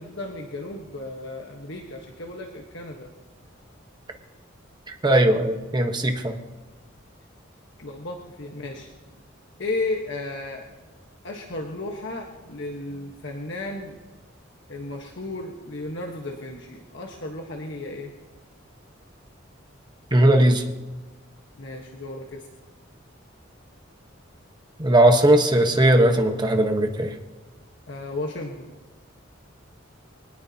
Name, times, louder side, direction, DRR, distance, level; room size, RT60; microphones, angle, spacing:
voice 1, 0.0-3.1 7.8-8.9 9.6-10.7 11.2-14.0 14.7-18.1 21.6-22.5 27.9-28.8, left 2 dB, 65° left, 1 dB, 1.3 m, -34 dB
voice 2, 5.0-6.4 20.1-20.6 24.8-27.1, right 1 dB, 20° right, 4 dB, 1.2 m, -18 dB
24.0 x 18.5 x 2.9 m, 1.2 s
head